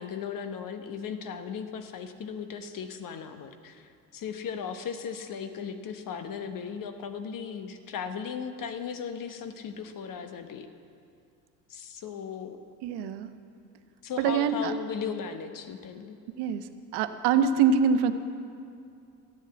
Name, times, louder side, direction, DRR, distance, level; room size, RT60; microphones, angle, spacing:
voice 1, 0.0-10.7 11.7-12.6 14.0-16.2, left 6 dB, 40° left, 8 dB, 1.1 m, -37 dB
voice 2, 12.8-13.3 14.2-14.7 16.4-18.1, right 6 dB, 55° right, 10 dB, 1.0 m, -25 dB
14.0 x 8.3 x 7.9 m, 2.4 s
hypercardioid pair, 65°, 49 cm